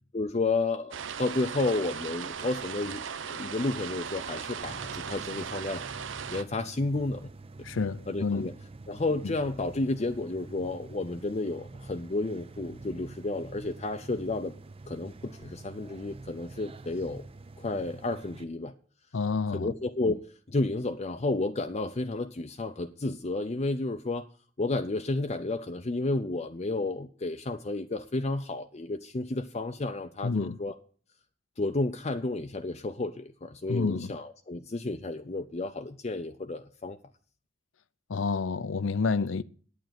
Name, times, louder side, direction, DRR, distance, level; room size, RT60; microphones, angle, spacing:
voice 1, 0.1-0.9 1.2-5.8 6.3-7.3 8.1-8.6 8.9-14.5 14.9-17.3 17.6-18.7 19.5-24.3 24.6-30.7 31.6-37.0, left 2 dB, 35° left, 0.6 m, -31 dB
sound 1, 0.9-6.4, right 7 dB, 75° right, 0.7 m, -38 dB
sound 2, 4.6-18.4, right 2 dB, 30° right, 0.6 m, -47 dB
voice 2, 7.7-8.5 9.2-9.3 19.1-19.7 30.2-30.6 33.7-34.1 38.1-39.4, left 4 dB, 85° left, 0.6 m, -29 dB
9.3 x 9.1 x 7.6 m
head